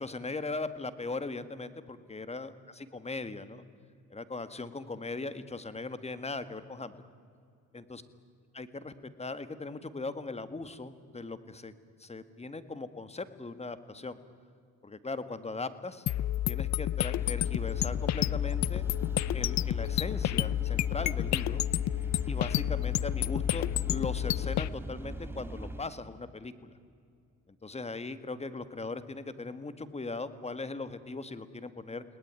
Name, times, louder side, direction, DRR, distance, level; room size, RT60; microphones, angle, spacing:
voice 1, 0.0-3.6 4.1-7.0 7.7-8.0 8.5-8.9 9.2-11.7 12.0-14.2 14.8-16.0 16.5-18.8 19.3-21.6 22.3-26.7 27.5-32.0, left 3 dB, 20° left, 12 dB, 1.8 m, -39 dB
sound 1, 16.1-24.7, left 13 dB, 65° left, 0.6 m, -30 dB
sound 2, 17.1-25.8, right 1 dB, 5° right, 2.3 m, -41 dB
29.5 x 19.0 x 9.8 m, 2.3 s
cardioid pair, 90°, 30 cm